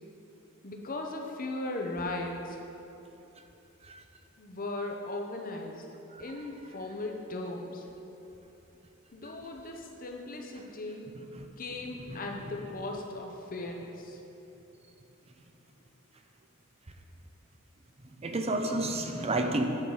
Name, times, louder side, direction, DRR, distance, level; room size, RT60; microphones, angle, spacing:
voice 1, 0.6-2.6 4.4-5.9 6.2-7.9 9.1-11.2 11.6-14.2, left 2 dB, 40° left, 2 dB, 0.9 m, -37 dB
voice 2, 18.2-19.6, right 2 dB, 30° right, 4 dB, 0.7 m, -30 dB
9.7 x 5.9 x 4.9 m, 2.9 s
head